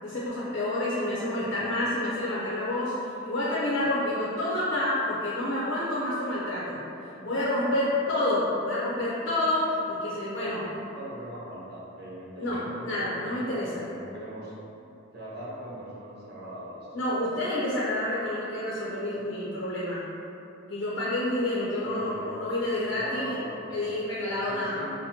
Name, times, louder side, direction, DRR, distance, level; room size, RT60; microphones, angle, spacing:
voice 1, 0.0-6.8 7.2-10.7 12.4-13.8 16.9-20.0 20.7-23.4 23.7-24.9, left 1 dB, 55° left, -8 dB, 0.7 m, -29 dB
voice 2, 10.9-14.5 15.1-17.0 21.8-22.3 22.8-25.0, right 1 dB, 55° right, -7 dB, 0.9 m, -41 dB
5.6 x 2.1 x 2.8 m, 2.8 s
head